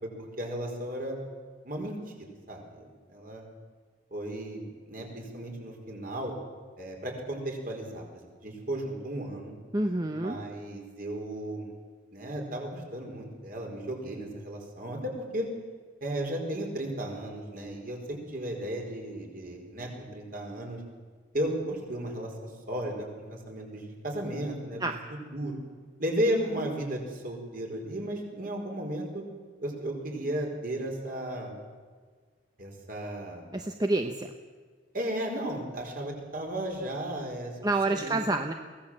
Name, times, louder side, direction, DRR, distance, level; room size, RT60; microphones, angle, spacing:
voice 1, 0.0-1.2 1.6-3.4 4.1-4.6 4.9-6.3 6.8-8.0 8.4-9.5 10.1-11.7 12.1-15.5 16.0-20.8 21.3-24.8 25.1-25.6 26.0-29.2 29.6-31.5 32.6-33.5 34.9-37.5 37.9-38.2, right 1 dB, 45° right, 1 dB, 4.8 m, -34 dB
voice 2, 9.7-10.4 24.8-25.0 33.5-34.3 37.6-38.5, right 2 dB, 20° right, 5 dB, 0.8 m, -28 dB
23.0 x 17.0 x 7.6 m, 1.5 s
head